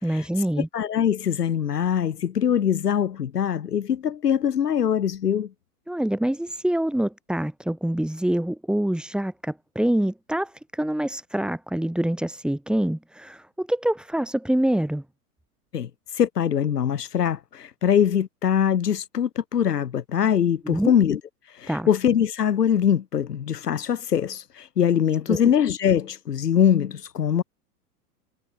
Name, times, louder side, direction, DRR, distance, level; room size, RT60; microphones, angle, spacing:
voice 1, 0.0-0.7 5.9-15.0 20.6-20.9 21.7-21.9 25.3-25.4, right 1 dB, ahead, 3.4 m, -25 dB
voice 2, 0.7-5.5 15.7-21.2 21.5-27.4, left 9 dB, 85° left, 1.8 m, -23 dB
hypercardioid pair, 115°, 47 cm